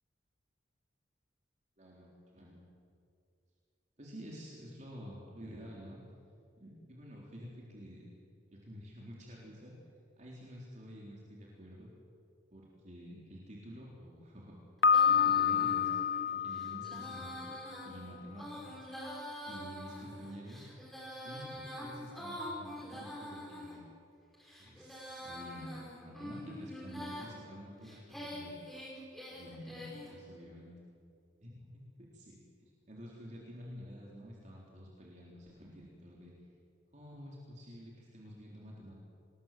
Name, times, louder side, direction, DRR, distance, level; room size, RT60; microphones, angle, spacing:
voice 1, 1.8-2.7 4.0-6.0 6.6-8.1 8.6-9.8 10.2-11.9 12.5-14.6 15.1-15.9 16.3-18.9 19.5-20.7 21.2-23.8 24.6-28.6 29.3-30.7 31.4-31.8 32.1-36.3 36.9-38.9, equal, 40° right, -4 dB, 3.9 m, -49 dB
Piano, 14.8-17.7, left 7 dB, 65° left, 0.7 m, -29 dB
Female singing, 14.8-23.8 24.3-27.3 27.8-30.1, equal, ahead, 5.1 m, -45 dB
26.0 x 21.0 x 7.7 m, 2.5 s
head